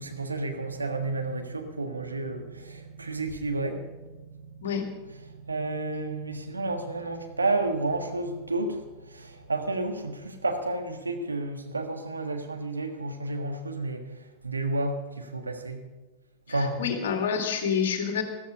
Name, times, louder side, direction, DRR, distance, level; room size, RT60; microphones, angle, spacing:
voice 1, 0.0-15.8 16.5-16.9, right 2 dB, 80° right, 5 dB, 1.5 m, -31 dB
voice 2, 16.5-18.2, left 7 dB, 60° left, 5 dB, 2.3 m, -28 dB
14.0 x 13.5 x 5.3 m, 1.2 s
figure-of-eight pair, 90°, 0 cm